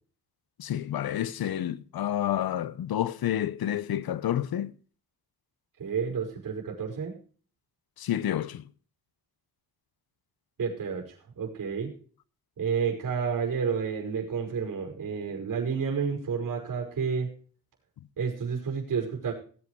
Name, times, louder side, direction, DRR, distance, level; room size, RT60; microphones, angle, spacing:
voice 1, 0.6-4.7 8.0-8.7, left 11 dB, 70° left, 1.0 m, -29 dB
voice 2, 5.8-7.1 10.6-11.9 12.6-17.3 18.2-19.3, right 6 dB, 55° right, 5.5 m, -30 dB
18.0 x 8.5 x 4.8 m
cardioid pair, 110°, 38 cm